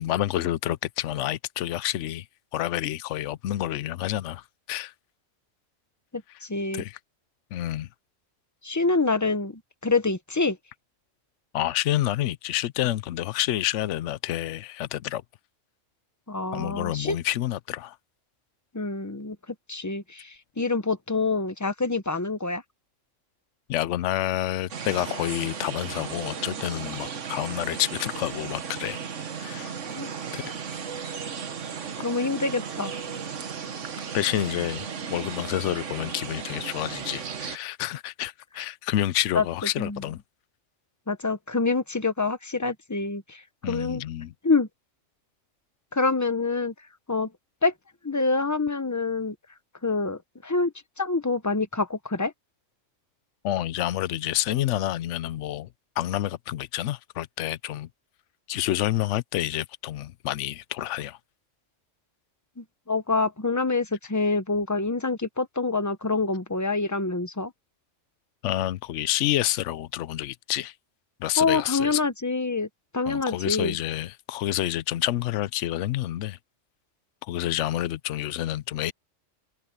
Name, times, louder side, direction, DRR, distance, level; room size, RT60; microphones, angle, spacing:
voice 1, 0.0-2.3 2.5-4.9 6.7-7.0 7.5-7.9 11.5-15.2 16.5-18.0 23.7-29.0 29.4-29.7 30.3-30.5 34.1-40.2 43.6-44.3 53.4-55.7 56.0-57.9 58.5-61.2 68.4-70.7 71.2-72.0 73.1-76.4 77.2-78.9, left 13 dB, 75° left, 0.9 m, -28 dB
voice 2, 6.1-6.8 8.6-10.6 16.3-17.2 18.7-19.4 19.7-22.6 29.9-30.1 32.0-32.9 39.3-39.4 39.8-40.0 41.1-44.0 44.4-44.7 45.9-46.7 47.1-47.3 47.6-47.7 48.0-49.3 49.8-52.3 62.6-67.5 71.4-72.7 72.9-73.8, left 3 dB, 15° left, 0.8 m, -26 dB
sound 1, 24.7-37.6, right 6 dB, 75° right, 1.6 m, -35 dB
omnidirectional pair, 1.3 m